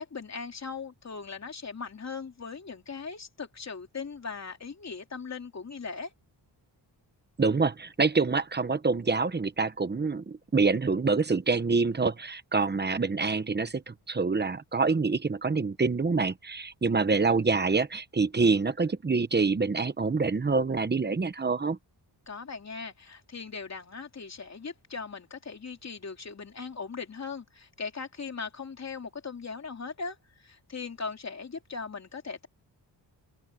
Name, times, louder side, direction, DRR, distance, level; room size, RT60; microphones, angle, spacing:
voice 1, 0.0-6.1 22.3-32.5, left 5 dB, 35° left, 3.1 m, -39 dB
voice 2, 7.4-21.8, right 4 dB, 25° right, 1.0 m, -26 dB
open air
wide cardioid pair, 160°, 44 cm